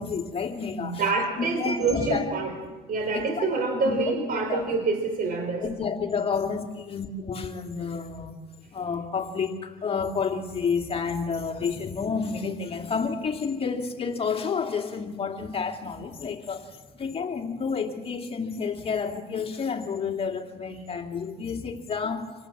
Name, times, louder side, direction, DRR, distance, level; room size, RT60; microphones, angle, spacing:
voice 1, 0.0-1.0 1.4-2.2 3.1-3.5 3.9-4.0 4.5-4.8 5.6-8.3 8.7-22.3, left 5 dB, 35° left, 2.5 m, -30 dB
voice 2, 0.8-2.5 2.9-5.7, right 3 dB, 55° right, 4.6 m, -26 dB
27.0 x 19.0 x 7.4 m
cardioid pair, 110°, 17 cm